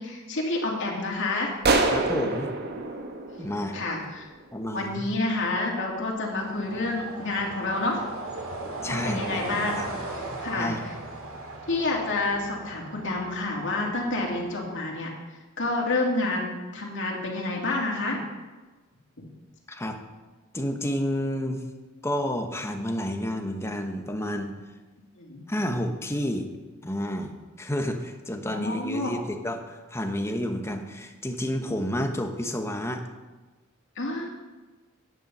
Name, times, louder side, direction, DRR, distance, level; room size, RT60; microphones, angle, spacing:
voice 1, 0.0-1.5 3.7-4.3 4.7-8.0 8.9-9.9 10.1-10.9 11.7-15.1 15.6-18.2 25.1-25.4 28.5-29.1 34.0-34.3, left 2 dB, 60° left, -1 dB, 2.6 m, -29 dB
sound 1, 1.6-4.2, right 3 dB, 50° right, 1.2 m, -26 dB
voice 2, 1.9-2.6 3.4-3.8 4.5-5.1 8.8-9.8 10.6-10.8 19.7-20.0 20.5-21.6 22.0-24.5 25.5-26.5 26.8-27.3 27.6-33.0, equal, 15° left, 4 dB, 1.0 m, -30 dB
sound 2, 6.2-14.8, right 2 dB, 85° right, 2.3 m, -38 dB
10.0 x 9.1 x 5.5 m, 1.2 s
head